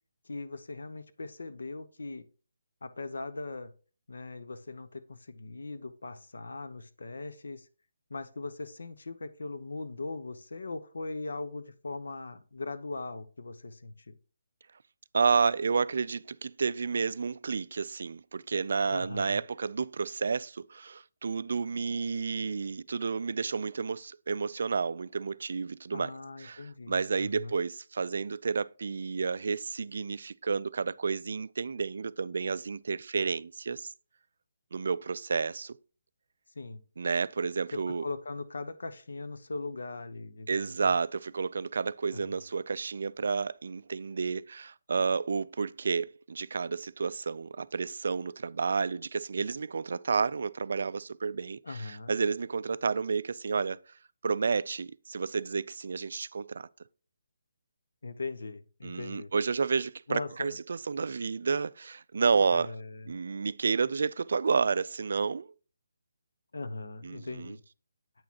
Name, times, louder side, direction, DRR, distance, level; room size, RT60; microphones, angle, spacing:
voice 1, 0.2-2.3 2.8-3.7 4.1-7.7 8.1-14.1 18.9-19.4 25.9-27.6 36.6-36.8 37.7-40.9 42.1-42.4 51.6-52.1 58.0-59.3 60.1-60.6 62.5-63.1 66.5-67.6, left 3 dB, 85° left, 0.9 m, -40 dB
voice 2, 15.1-26.1 26.4-33.9 34.7-35.7 37.0-38.0 40.5-53.8 54.2-56.7 58.8-62.7 63.1-65.5 67.0-67.6, right 5 dB, 55° right, 0.3 m, -31 dB
8.6 x 6.3 x 2.9 m
hypercardioid pair, 175°, 0 cm